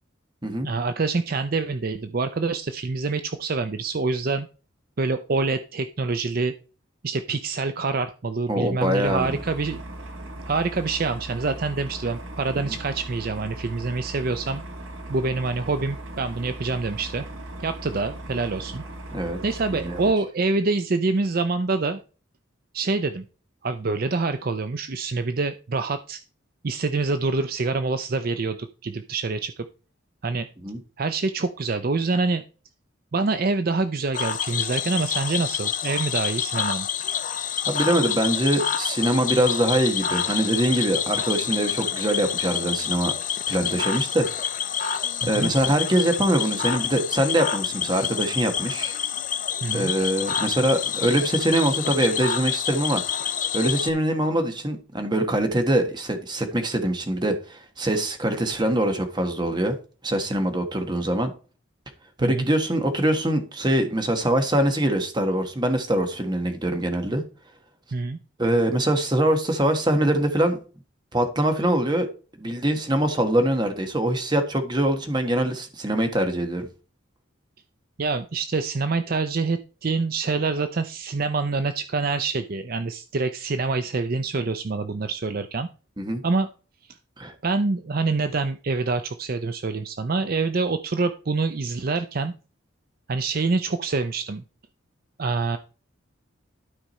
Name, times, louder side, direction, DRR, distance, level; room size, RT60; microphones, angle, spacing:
voice 1, 0.6-4.5 5.0-6.5 7.0-9.9 10.5-14.6 15.1-17.3 17.6-18.8 19.4-22.0 22.7-23.2 23.6-26.2 26.6-29.7 30.2-30.5 31.0-32.4 33.1-36.9 45.2-45.5 49.6-49.9 62.2-62.4 67.9-68.2 78.0-85.7 86.2-86.5 87.4-92.3 93.1-94.4 95.2-95.6, right 3 dB, 45° right, 0.5 m, -26 dB
voice 2, 8.5-9.4 12.6-12.7 19.1-19.4 19.8-20.0 30.6-30.8 37.7-43.1 43.5-49.0 49.7-53.0 53.5-59.7 60.0-61.3 62.2-67.2 68.4-70.6 71.1-72.1 72.4-76.7 86.0-86.2 87.2-87.3, right 1 dB, 20° right, 1.4 m, -23 dB
sound 1, 9.0-20.1, right 1 dB, 75° right, 1.7 m, -38 dB
Cricket / Frog, 34.1-53.9, left 8 dB, 40° left, 0.7 m, -28 dB
12.0 x 4.9 x 4.2 m
head